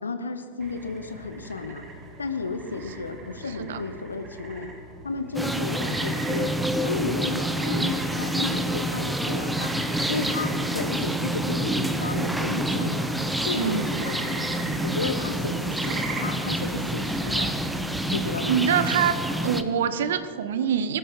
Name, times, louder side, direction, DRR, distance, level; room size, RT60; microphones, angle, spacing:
voice 1, 0.0-1.9 2.2-4.7 5.0-6.5 6.8-9.7 10.1-13.1 13.4-14.6 14.8-17.5 18.1-18.6, left 3 dB, 75° left, 9 dB, 1.0 m, -33 dB
sound 1, 0.6-18.2, right 3 dB, 25° right, 2.6 m, -41 dB
sound 2, 5.3-19.6, right 1 dB, 5° right, 1.0 m, -27 dB
voice 2, 13.6-14.1 18.5-19.1 19.4-21.0, right 8 dB, 60° right, 13 dB, 1.0 m, -25 dB
20.5 x 14.0 x 4.9 m, 2.2 s
figure-of-eight pair, 90°, 0 cm